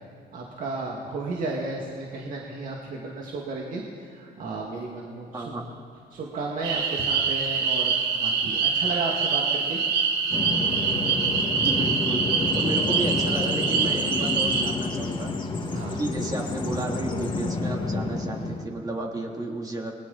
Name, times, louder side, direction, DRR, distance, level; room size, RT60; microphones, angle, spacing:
voice 1, 0.3-5.5 6.1-9.8 15.7-16.0, right 3 dB, 55° right, -2 dB, 2.4 m, -33 dB
voice 2, 5.3-5.7 11.6-15.6 15.9-19.9, right 1 dB, 20° right, 0 dB, 3.3 m, -33 dB
sound 1, 6.6-14.7, right 5 dB, 80° right, 1.9 m, -25 dB
Bird vocalization bird call bird song, 10.3-18.6, left 3 dB, 25° left, 2.2 m, -29 dB
29.0 x 21.0 x 4.3 m, 2.2 s
cardioid pair, 110°, 17 cm